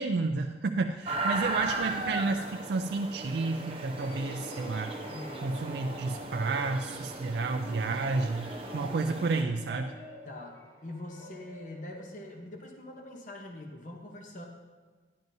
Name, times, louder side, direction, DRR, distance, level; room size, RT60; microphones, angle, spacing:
voice 1, 0.0-4.9 5.4-9.9, right 3 dB, 65° right, 5 dB, 0.4 m, -31 dB
sound 1, 1.1-9.4, right 2 dB, 30° right, 0.7 m, -37 dB
sound 2, 3.9-12.7, equal, 15° left, 1.0 m, -48 dB
voice 2, 5.0-5.5 10.2-14.5, left 1 dB, 45° left, 2 dB, 0.8 m, -43 dB
10.5 x 10.5 x 2.7 m, 1.4 s
head